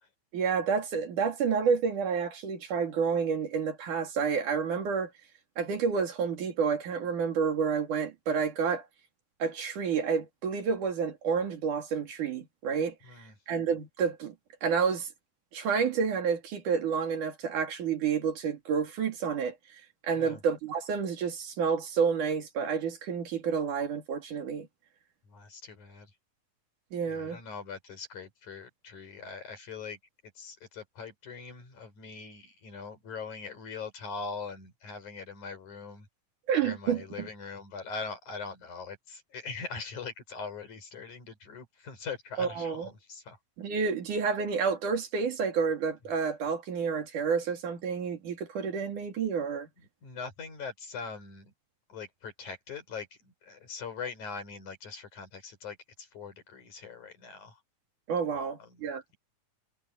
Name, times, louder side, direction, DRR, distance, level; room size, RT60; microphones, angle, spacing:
voice 1, 0.3-5.1 5.6-8.9 9.4-12.9 13.5-14.3 14.6-15.1 15.5-19.6 20.0-24.7 26.9-27.4 36.5-37.3 42.4-42.9 43.6-49.7 58.1-59.0, right 6 dB, 80° right, 4.3 m, -29 dB
voice 2, 25.3-26.1 27.1-30.0 30.4-36.1 36.6-43.4 50.0-51.5 51.9-57.6 58.3-58.9, left 5 dB, 75° left, 6.6 m, -42 dB
omnidirectional pair, 3.5 m